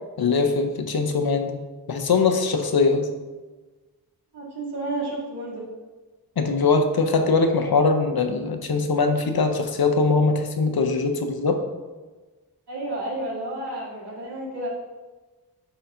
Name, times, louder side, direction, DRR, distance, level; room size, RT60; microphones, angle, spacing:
voice 1, 0.2-1.6 1.9-3.1 6.4-11.6, left 4 dB, 70° left, 5 dB, 0.7 m, -21 dB
voice 2, 4.3-5.6 12.7-14.7, right 1 dB, 90° right, -6 dB, 2.0 m, -31 dB
10.0 x 4.0 x 2.7 m, 1.3 s
wide cardioid pair, 75°, 39 cm